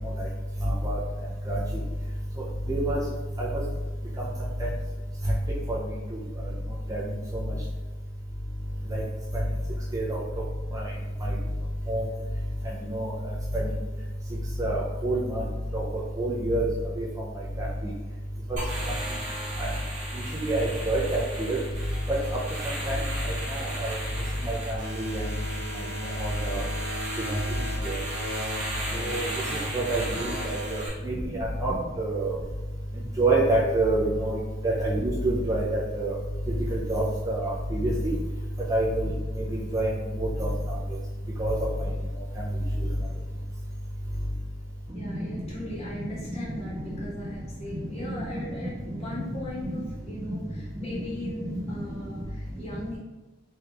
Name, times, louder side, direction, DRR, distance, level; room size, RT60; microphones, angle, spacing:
voice 1, 0.6-1.0 1.5-1.6 2.7-3.0 3.4-3.5 4.6-4.7 5.7-5.8 6.9-7.0 8.9-9.0 9.9-10.2 10.7-10.8 11.2-11.3 11.9-12.0 12.8-13.1 13.5-13.7 14.6-15.4 15.7-15.8 16.2-16.6 17.0-17.1 17.6-17.7 18.5-18.6 19.6-19.7 20.4-21.6 22.9-23.9 24.4-25.2 26.2-26.6 27.3-27.4 27.8-28.0 29.0-29.3 29.7-32.3 33.2-34.4 34.6-36.1 36.7-38.1 38.7-39.1 39.7-39.9 40.2-40.5 41.4-41.5 45.1-45.2 51.7-51.8, right 2 dB, 15° right, -5 dB, 0.3 m, -27 dB
sound 1, 18.6-30.9, right 1 dB, 40° right, 0.9 m, -35 dB
voice 2, 44.9-53.0, left 1 dB, 30° left, -7 dB, 0.9 m, -39 dB
3.1 x 2.3 x 3.3 m, 1.2 s
head